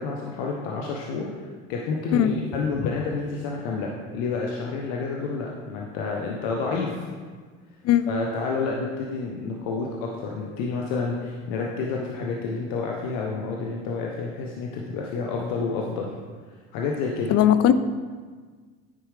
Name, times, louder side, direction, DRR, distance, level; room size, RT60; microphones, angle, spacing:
voice 1, 0.0-7.0 8.1-16.1 16.7-17.4, left 4 dB, 75° left, -1 dB, 0.8 m, -29 dB
voice 2, 17.3-17.7, left 11 dB, 50° left, 12 dB, 0.5 m, -18 dB
9.6 x 4.6 x 3.3 m, 1.5 s
supercardioid pair, 85°, 31 cm